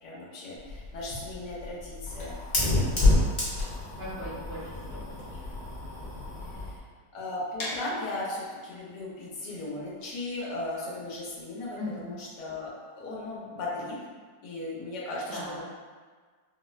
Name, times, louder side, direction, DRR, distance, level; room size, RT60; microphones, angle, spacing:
voice 1, 0.0-2.4 2.6-3.3 6.5-6.8 7.1-12.7 13.0-14.0 14.4-15.6, left 2 dB, 90° left, -5 dB, 1.4 m, -37 dB
Fire, 0.6-6.8, left 2 dB, 40° left, 0.7 m, -29 dB
voice 2, 4.0-5.4 11.7-12.1 15.3-15.6, left 1 dB, 80° right, -11 dB, 1.4 m, -39 dB
sound 1, 7.6-13.4, left 1 dB, 65° left, 1.1 m, -43 dB
4.5 x 2.1 x 2.3 m, 1.5 s
omnidirectional pair, 1.8 m